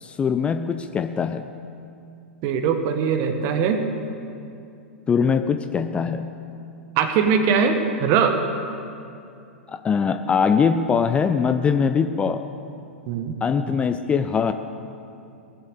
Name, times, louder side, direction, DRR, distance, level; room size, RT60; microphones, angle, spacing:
voice 1, 0.0-1.5 5.1-6.3 9.7-12.5 13.4-14.5, left 6 dB, 15° left, 9 dB, 0.4 m, -22 dB
voice 2, 2.4-3.8 7.0-8.4 13.1-13.3, right 6 dB, 40° right, 7 dB, 1.3 m, -21 dB
17.0 x 7.8 x 6.7 m, 2.6 s
figure-of-eight pair, 100°, 7 cm